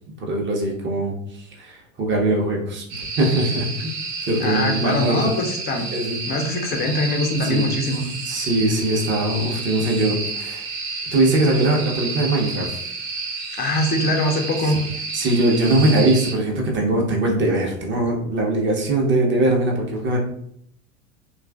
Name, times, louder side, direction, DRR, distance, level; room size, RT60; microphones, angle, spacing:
voice 1, 0.1-2.8 3.2-3.9 4.2-5.3 5.9-6.2 7.4-7.6 8.2-10.6 11.1-12.8 15.1-20.2, right 2 dB, 30° right, 0 dB, 0.8 m, -21 dB
sound 1, 2.9-16.3, right 3 dB, 75° right, 0.8 m, -30 dB
voice 2, 4.4-5.9 6.3-8.0 13.5-14.8, left 1 dB, 25° left, 3 dB, 0.5 m, -23 dB
2.9 x 2.4 x 2.3 m, 0.71 s
hypercardioid pair, 85°, 40 cm